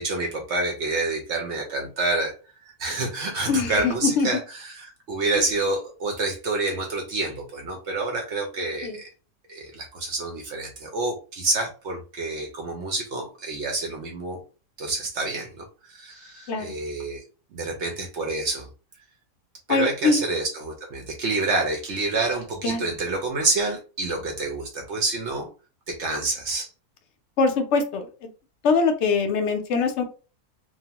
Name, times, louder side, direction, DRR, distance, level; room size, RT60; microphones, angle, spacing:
voice 1, 0.0-2.4 2.8-9.1 9.5-14.4 14.8-17.2 17.5-18.7 19.7-25.5 25.9-26.7, right 3 dB, 65° right, 2 dB, 0.7 m, -28 dB
voice 2, 3.5-4.3 8.8-9.0 16.5-16.7 19.7-20.2 22.6-22.8 27.4-28.1 28.6-30.0, left 4 dB, 75° left, 5 dB, 0.6 m, -22 dB
2.9 x 2.0 x 2.8 m, 0.35 s
omnidirectional pair, 1.8 m